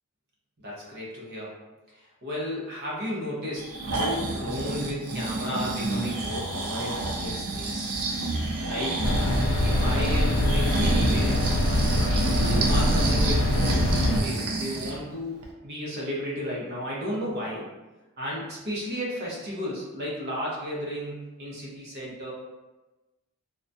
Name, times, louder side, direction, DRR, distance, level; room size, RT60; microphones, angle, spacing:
voice 1, 0.6-1.6 1.9-8.0 8.6-9.0 9.6-11.4 11.9-17.7 18.2-22.3, equal, 45° right, -5 dB, 0.7 m, -34 dB
Breathing, 3.6-15.0 15.4-15.5, right 2 dB, 85° right, 0.4 m, -29 dB
sound 1, 9.0-14.2, left 1 dB, 55° left, 0.3 m, -23 dB
2.3 x 2.1 x 2.5 m, 1.1 s
head